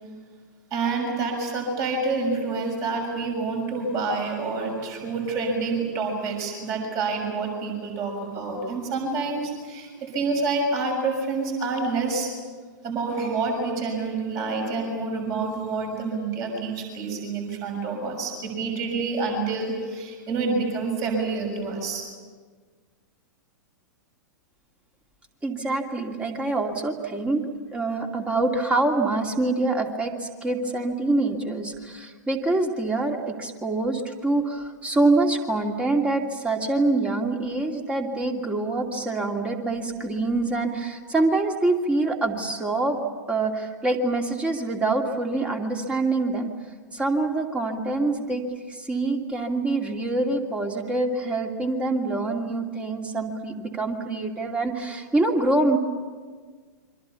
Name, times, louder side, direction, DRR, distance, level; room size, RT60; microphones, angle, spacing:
voice 1, 0.7-12.3 12.8-22.0, right 3 dB, 35° right, 2 dB, 6.7 m, -28 dB
voice 2, 25.4-27.4 27.7-43.0 43.3-46.5 46.9-48.4 48.7-55.8, right 2 dB, 10° right, 3 dB, 2.7 m, -25 dB
29.0 x 24.5 x 7.2 m, 1.5 s
figure-of-eight pair, 100°, 10 cm